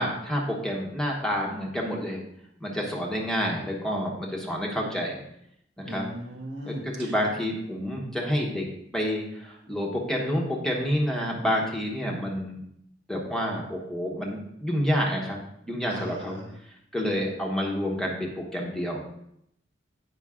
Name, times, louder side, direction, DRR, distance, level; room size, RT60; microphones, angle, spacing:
voice 1, 0.0-2.2 2.6-5.2 5.8-6.0 6.6-8.6 8.9-12.5 13.1-15.4 15.6-16.4 16.9-19.0, equal, 5° left, -2 dB, 1.1 m, -28 dB
voice 2, 5.8-7.1 15.9-16.5, equal, 75° right, 1 dB, 1.7 m, -38 dB
8.9 x 5.3 x 3.7 m, 0.76 s
head